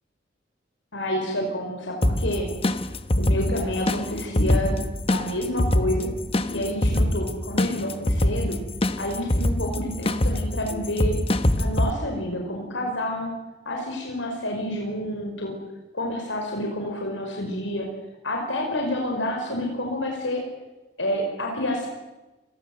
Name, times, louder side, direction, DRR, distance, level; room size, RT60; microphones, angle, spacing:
voice 1, 0.9-2.5 3.2-4.8 5.1-6.1 6.5-8.6 9.0-11.2 11.6-13.3 13.7-15.6 15.9-17.9 18.2-20.4 21.0-21.9, left 1 dB, 80° left, 1 dB, 5.4 m, -28 dB
sound 1, 2.0-11.9, left 1 dB, 30° left, 1.1 m, -24 dB
28.5 x 22.0 x 8.0 m, 1.1 s
head